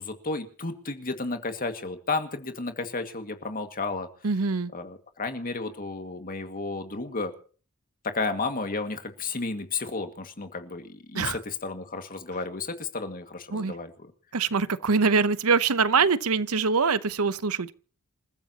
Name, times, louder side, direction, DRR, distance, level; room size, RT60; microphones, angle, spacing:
voice 1, 0.0-4.1 4.7-7.3 8.0-13.9, left 3 dB, 40° left, 2.1 m, -32 dB
voice 2, 4.2-4.7 11.1-11.4 13.5-13.7 14.3-17.7, right 5 dB, 80° right, 0.9 m, -24 dB
28.0 x 14.5 x 2.9 m
head